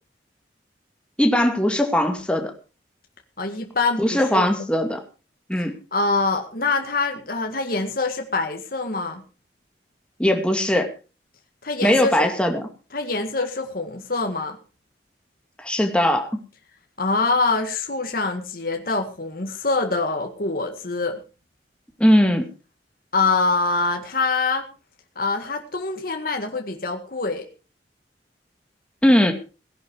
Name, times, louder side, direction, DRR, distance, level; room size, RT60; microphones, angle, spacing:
voice 1, 1.2-2.5 4.0-5.0 5.5-5.8 10.2-10.9 11.8-12.6 15.6-16.3 22.0-22.5 29.0-29.3, left 1 dB, 5° left, 4 dB, 2.3 m, -19 dB
voice 2, 3.4-4.5 5.9-9.2 11.6-12.3 12.9-14.6 17.0-21.2 23.1-24.6 25.2-27.5, left 3 dB, 55° left, 4 dB, 2.0 m, -24 dB
18.0 x 11.0 x 4.7 m, 0.34 s
head